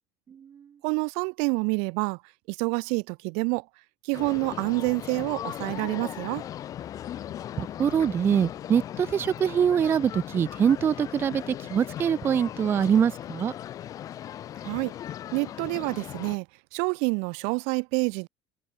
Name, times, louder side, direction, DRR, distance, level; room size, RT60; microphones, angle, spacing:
voice 1, 0.3-0.7 7.6-13.5, right 8 dB, 20° right, 0.4 m, -24 dB
voice 2, 0.8-2.2 2.5-3.6 4.0-6.4 14.6-14.9 15.3-16.5 16.7-18.3, right 36 dB, 80° right, 0.9 m, -27 dB
sound 1, 4.1-16.4, left 11 dB, 30° left, 0.6 m, -38 dB
cardioid pair, 170°, 11 cm